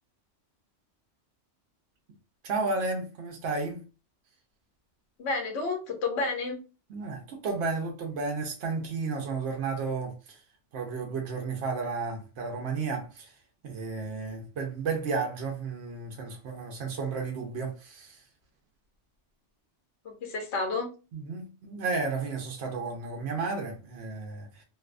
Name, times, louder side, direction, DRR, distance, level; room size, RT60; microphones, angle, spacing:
voice 1, 2.4-3.8 6.9-10.4 10.7-13.3 13.6-18.2 21.1-24.6, right 4 dB, 70° right, 0.9 m, -33 dB
voice 2, 5.2-6.6 20.0-20.9, left 3 dB, 70° left, 0.9 m, -30 dB
2.6 x 2.1 x 2.4 m
omnidirectional pair, 1.2 m